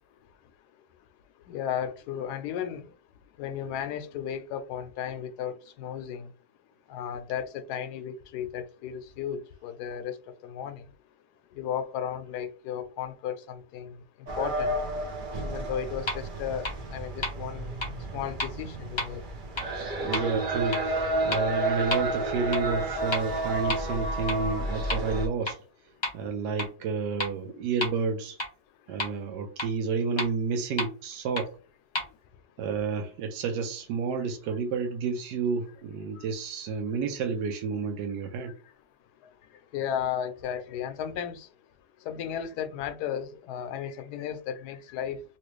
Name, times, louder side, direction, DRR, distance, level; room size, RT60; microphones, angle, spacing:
voice 1, 1.5-2.9 3.4-6.3 6.9-10.2 10.4-10.8 11.6-13.9 14.4-14.7 15.4-17.7 18.1-19.2 39.7-41.5 42.1-45.2, left 9 dB, 75° left, 1.1 m, -34 dB
sound 1, 14.3-25.3, right 1 dB, 60° right, 0.5 m, -31 dB
sound 2, 16.1-16.2 16.6-16.7 17.2-17.3 17.8-17.9 18.4-18.5 19.0-19.1 19.6-19.7 20.1-20.2 20.7-20.8 21.3-21.4 21.9-22.0 22.5-22.6 23.1-23.2 23.7-23.8 24.3-24.4 24.9-25.0 25.5-25.6 26.0-26.1 26.6-26.7 27.2-27.3 27.8-27.9 28.4-28.5 29.0-29.1 29.6-29.7 30.2-30.3 30.8-30.9 31.4-31.5 31.9-32.0, left 1 dB, 30° left, 0.5 m, -29 dB
voice 2, 20.0-25.6 26.1-28.4 28.9-31.5 32.6-38.5, right 5 dB, 80° right, 1.2 m, -30 dB
3.0 x 2.9 x 3.1 m
omnidirectional pair, 1.8 m